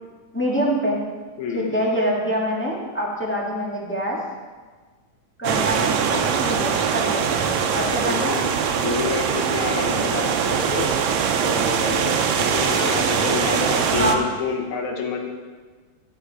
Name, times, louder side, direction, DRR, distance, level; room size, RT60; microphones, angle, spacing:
voice 1, 0.3-1.0 1.5-4.2 5.4-7.5 7.7-8.3 13.9-14.2, equal, 5° left, -4 dB, 1.0 m, -25 dB
voice 2, 1.4-1.8 8.0-8.4 8.8-10.9 11.4-15.3, left 5 dB, 70° left, 1 dB, 2.7 m, -28 dB
sound 1, 5.4-14.2, right 7 dB, 70° right, 1.9 m, -22 dB
12.5 x 8.4 x 4.9 m, 1.4 s
omnidirectional pair, 3.6 m